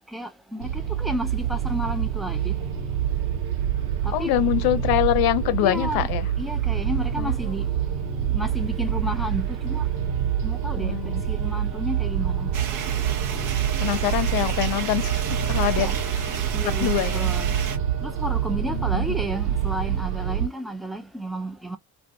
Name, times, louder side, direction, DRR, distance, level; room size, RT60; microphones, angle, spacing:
voice 1, 0.1-2.6 4.0-4.6 5.6-6.1 6.4-7.7 8.3-9.9 10.4-12.6 15.8-16.0 16.5-17.6 18.0-21.8, equal, ahead, 0.5 m, -32 dB
sound 1, 0.6-20.5, right 9 dB, 70° right, 0.9 m, -26 dB
voice 2, 4.1-6.3 7.2-7.5 10.7-11.2 13.8-16.3 16.8-17.3 18.7-19.1, left 14 dB, 55° left, 0.7 m, -25 dB
sound 2, 12.5-17.8, right 7 dB, 45° right, 0.7 m, -33 dB
2.5 x 2.3 x 2.4 m
figure-of-eight pair, 55°, 45 cm